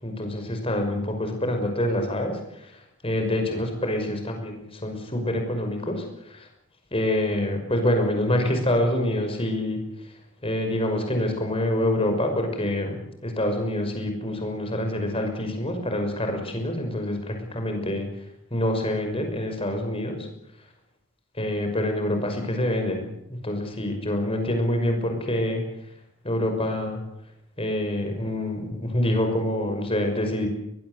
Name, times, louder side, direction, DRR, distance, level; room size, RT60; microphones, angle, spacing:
voice 1, 0.0-6.5 6.9-10.1 10.4-18.1 18.5-20.3 21.3-23.1 23.4-25.6 26.2-27.0 27.6-30.5, left 1 dB, 25° left, 4 dB, 5.9 m, -26 dB
22.5 x 21.5 x 8.3 m, 0.79 s
head